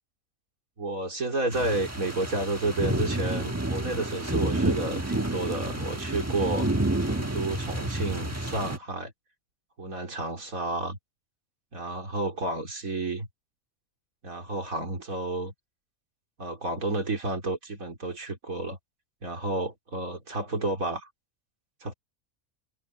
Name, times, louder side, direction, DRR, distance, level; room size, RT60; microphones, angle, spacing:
voice 1, 0.8-6.7 7.0-9.1 9.8-11.0 11.7-13.3 14.2-15.5 16.4-18.8 19.2-21.1 21.8-21.9, right 2 dB, 85° right, 4.3 m, -31 dB
sound 1, 1.5-8.8, right 2 dB, 10° right, 1.3 m, -29 dB
omnidirectional pair, 1.4 m